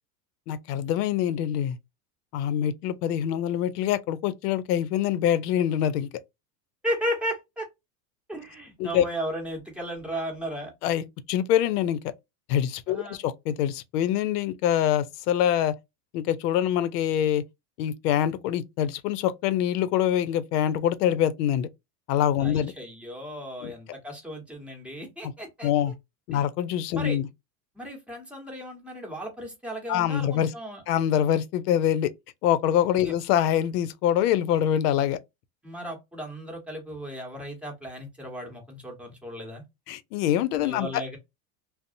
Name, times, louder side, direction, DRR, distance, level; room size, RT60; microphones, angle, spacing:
voice 1, 0.5-1.8 2.3-6.1 8.8-9.0 10.8-12.1 12.5-15.7 16.1-17.4 17.8-21.7 22.1-22.7 23.6-23.7 25.6-25.9 26.3-27.2 29.9-30.5 30.9-32.1 32.4-35.2 39.9-41.0, left 10 dB, 80° left, 0.6 m, -25 dB
voice 2, 6.8-7.7 8.3-10.7 12.9-13.2 22.4-25.7 26.3-26.4 27.0-27.2 27.7-30.8 33.0-33.1 35.6-39.6 40.6-41.2, equal, 5° right, 1.1 m, -35 dB
2.6 x 2.0 x 2.5 m
supercardioid pair, 110°, 47 cm